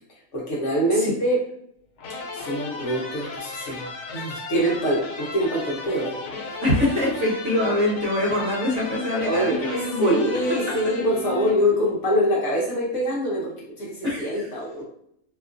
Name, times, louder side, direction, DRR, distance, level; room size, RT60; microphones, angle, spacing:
voice 1, 0.3-1.4 2.3-6.2 6.5-6.6 9.2-9.6 10.0-14.8, equal, 60° left, -4 dB, 1.0 m, -24 dB
sound 1, 2.0-12.0, left 3 dB, 85° left, 1.2 m, -35 dB
voice 2, 6.6-10.2 14.0-14.5, left 1 dB, 55° right, -4 dB, 1.1 m, -24 dB
2.9 x 2.3 x 2.4 m, 0.72 s
omnidirectional pair, 1.6 m